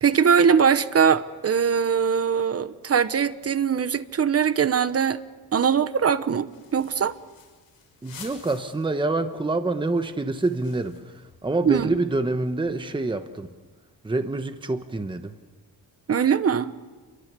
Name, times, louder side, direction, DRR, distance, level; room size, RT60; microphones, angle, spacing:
voice 1, 0.0-5.2 5.5-7.1 11.6-11.9 16.1-16.7, right 7 dB, 35° right, 13 dB, 1.1 m, -21 dB
sound 1, 6.3-9.1 9.4-9.5 9.7-12.9, left 6 dB, 60° left, 6.9 m, -50 dB
voice 2, 8.0-13.5 14.0-15.3, right 2 dB, 10° right, 8 dB, 1.1 m, -26 dB
29.0 x 23.0 x 6.9 m, 1.4 s
wide cardioid pair, 140°, 40 cm